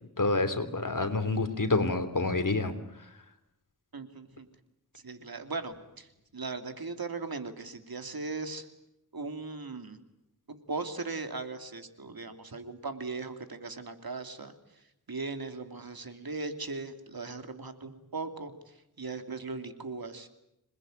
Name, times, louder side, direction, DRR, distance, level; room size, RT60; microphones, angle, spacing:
voice 1, 0.2-2.7, left 3 dB, 55° left, 9 dB, 3.2 m, -28 dB
voice 2, 3.9-4.5 5.0-6.1 6.3-8.7 9.1-10.0 10.5-14.5 15.1-18.5 19.0-20.3, right 3 dB, 75° right, 8 dB, 2.8 m, -38 dB
27.0 x 21.0 x 9.1 m, 0.85 s
wide cardioid pair, 75°, 37 cm